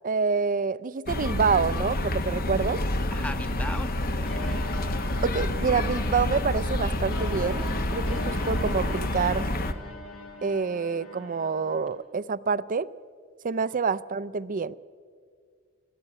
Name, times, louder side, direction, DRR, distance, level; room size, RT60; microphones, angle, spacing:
voice 1, 0.0-2.8 5.2-9.5 10.4-12.9 13.4-14.8, right 5 dB, 40° right, 17 dB, 0.5 m, -27 dB
sound 1, 1.1-9.7, left 1 dB, 45° left, 1.1 m, -28 dB
voice 2, 3.1-4.8, left 1 dB, 5° left, 10 dB, 0.9 m, -38 dB
sound 2, 4.3-11.9, left 1 dB, 85° left, 3.5 m, -41 dB
29.5 x 12.5 x 8.8 m, 2.1 s
head